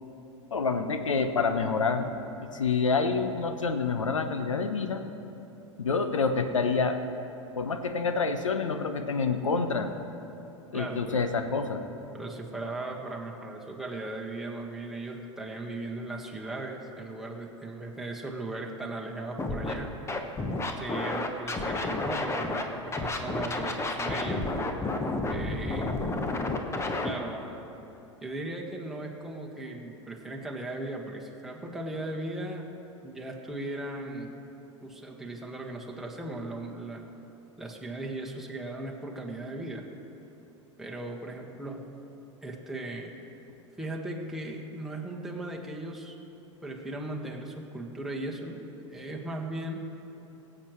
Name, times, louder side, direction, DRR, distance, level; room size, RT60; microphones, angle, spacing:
voice 1, 0.5-2.1 2.5-5.0 5.8-7.0 7.6-9.9 10.7-11.8, left 4 dB, 80° left, 8 dB, 0.8 m, -27 dB
voice 2, 10.7-11.2 12.1-19.9 20.8-24.4 25.3-26.0 27.0-27.6 28.2-32.7 33.0-34.4 34.8-37.1 37.6-39.8 40.8-41.8 42.4-43.1 43.8-46.1 46.6-48.6 48.9-49.8, right 2 dB, ahead, -2 dB, 1.5 m, -37 dB
Scratching (performance technique), 19.4-19.7 20.1-22.6 22.9-27.1, left 2 dB, 15° left, 1.1 m, -30 dB
22.5 x 7.8 x 3.1 m, 2.9 s
figure-of-eight pair, 85°, 16 cm